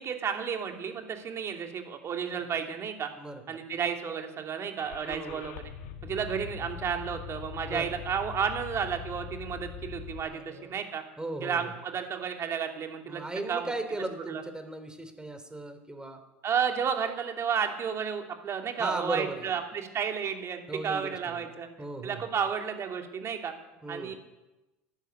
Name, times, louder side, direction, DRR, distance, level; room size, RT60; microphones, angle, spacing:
voice 1, 0.0-3.1 3.5-5.6 6.0-11.0 11.4-13.2 13.5-13.7 14.3-14.4 16.4-21.7 22.0-23.5 23.9-24.1, right 7 dB, 40° right, 4 dB, 2.7 m, -32 dB
voice 2, 3.2-3.6 5.0-5.5 7.7-7.9 10.3-10.8 11.2-11.7 13.1-16.2 18.8-19.5 20.7-21.5 21.8-22.3 23.8-24.1, right 2 dB, 10° right, 8 dB, 3.0 m, -37 dB
Car / Engine starting, 4.8-10.2, left 10 dB, 75° left, 1.4 m, -42 dB
12.0 x 12.0 x 9.2 m, 1.0 s
hypercardioid pair, 80°, 7 cm